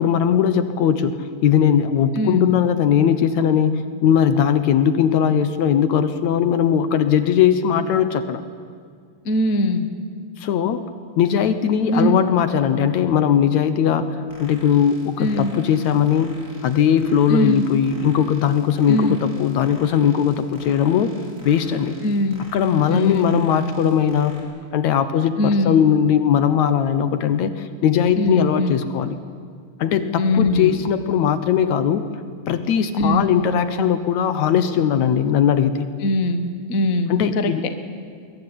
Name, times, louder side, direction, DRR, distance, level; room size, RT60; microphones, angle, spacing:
voice 1, 0.0-8.4 10.4-10.8 11.2-21.1 21.4-22.0 22.5-24.4 24.7-29.2 29.8-32.0 32.5-35.9 37.1-37.7, left 8 dB, 70° left, 11 dB, 2.2 m, -19 dB
voice 2, 2.2-2.5 9.2-9.9 11.9-12.2 15.2-15.5 17.3-17.6 18.9-19.2 22.0-22.4 22.9-23.4 25.4-25.8 28.2-28.7 30.2-30.8 33.0-33.3 36.0-37.5, left 1 dB, 40° left, 8 dB, 1.3 m, -21 dB
sound 1, 14.3-24.4, equal, 25° right, 5.3 m, -46 dB
23.0 x 22.0 x 10.0 m, 2.1 s
omnidirectional pair, 3.7 m